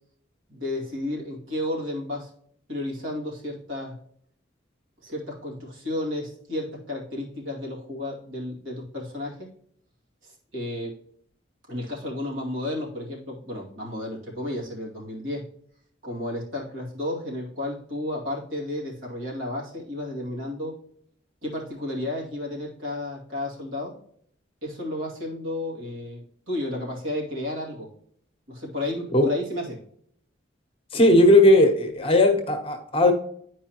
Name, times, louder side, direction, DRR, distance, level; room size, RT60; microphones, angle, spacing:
voice 1, 0.5-2.3 2.7-3.9 5.0-9.5 10.2-10.9 11.7-15.4 16.0-20.7 21.4-23.9 24.6-27.9 28.5-29.8, left 1 dB, 85° right, -3 dB, 2.4 m, -32 dB
voice 2, 30.9-33.1, left 1 dB, 30° left, 4 dB, 0.9 m, -17 dB
10.0 x 4.6 x 3.0 m, 0.64 s
head